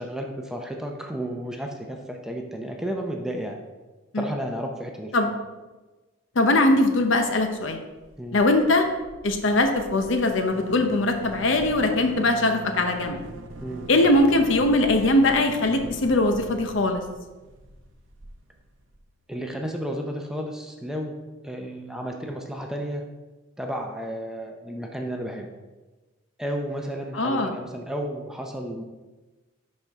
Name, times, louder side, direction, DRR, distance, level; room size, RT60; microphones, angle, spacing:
voice 1, 0.0-3.6 4.1-5.3 8.2-8.4 13.6-13.9 19.3-23.1 23.6-25.5 26.4-28.8, equal, 5° right, 1 dB, 0.6 m, -32 dB
voice 2, 6.4-7.8 8.3-8.9 9.2-13.2 13.9-17.0 27.1-27.5, left 2 dB, 70° left, 6 dB, 0.8 m, -21 dB
sound 1, 7.3-7.7 8.0-8.1 8.3-19.0, right 2 dB, 75° right, 0.7 m, -42 dB
10.5 x 4.4 x 3.6 m, 1.2 s
head